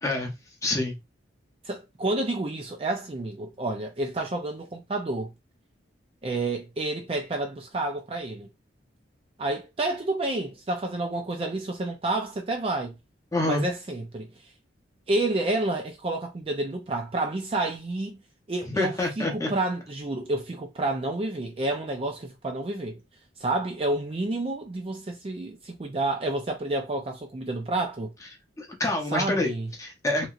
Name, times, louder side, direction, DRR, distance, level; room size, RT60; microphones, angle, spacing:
voice 1, 0.6-0.9 13.3-13.6 18.7-19.5 28.6-29.5 29.8-30.3, left 1 dB, 15° left, 0.7 m, -27 dB
voice 2, 1.6-5.3 6.2-8.5 9.4-12.9 13.4-14.3 15.1-18.2 18.5-23.0 23.4-28.1 29.1-29.7, right 2 dB, 30° right, 0.4 m, -29 dB
2.9 x 2.7 x 2.4 m
head